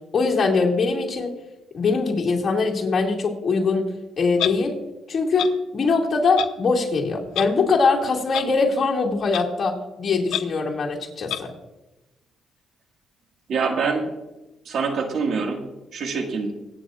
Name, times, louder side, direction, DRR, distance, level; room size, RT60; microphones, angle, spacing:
voice 1, 0.1-1.3 1.7-3.9 4.2-4.8 5.1-11.5, left 4 dB, 45° left, -1 dB, 2.4 m, -22 dB
Clock, 4.4-4.5 5.4-5.5 6.4-6.5 7.3-7.5 8.3-8.4 9.3-9.4 10.3-10.4 11.3-11.4, left 12 dB, 85° left, 0.7 m, -26 dB
voice 2, 13.5-14.1 14.7-15.6 15.9-16.5, right 4 dB, 65° right, 3 dB, 1.9 m, -25 dB
24.0 x 9.0 x 2.5 m, 1.0 s
cardioid pair, 90°, 0 cm